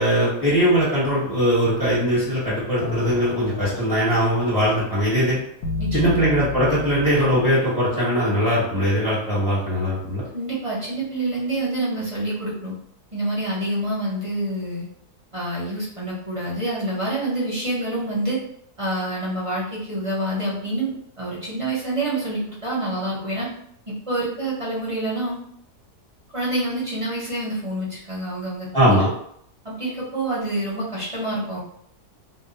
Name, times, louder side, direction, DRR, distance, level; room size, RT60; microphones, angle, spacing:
voice 1, 0.0-5.4 5.9-10.2 28.7-29.1, equal, 5° left, -9 dB, 0.8 m, -20 dB
sound 1, 2.8-7.5, left 4 dB, 85° left, 1.1 m, -32 dB
voice 2, 5.8-6.2 10.3-12.7 13.1-14.9 15.3-18.4 18.8-23.5 24.1-25.4 26.3-29.0 29.6-31.6, right 1 dB, 30° right, -7 dB, 0.7 m, -27 dB
2.7 x 2.1 x 3.9 m, 0.69 s
omnidirectional pair, 1.7 m